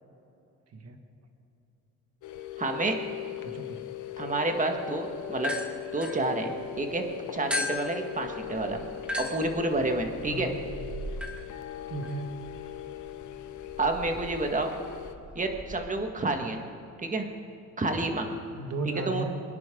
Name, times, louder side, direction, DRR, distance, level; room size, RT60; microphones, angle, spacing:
sound 1, 2.2-15.2, left 11 dB, 75° left, 0.9 m, -40 dB
voice 1, 2.6-2.9 4.2-5.5 5.9-7.0 7.3-8.9 9.2-10.5 13.8-14.7 15.4-16.6 17.0-17.3 17.8-18.4 19.1-19.2, right 2 dB, 25° right, 4 dB, 1.9 m, -29 dB
voice 2, 3.4-3.8 10.3-10.5 11.9-12.3 18.5-19.4, right 2 dB, 55° right, 5 dB, 1.9 m, -35 dB
sound 2, 5.4-6.8 7.5-15.8, left 1 dB, 5° right, 2.1 m, -38 dB
22.5 x 10.5 x 3.9 m, 2.8 s
cardioid pair, 90°, 30 cm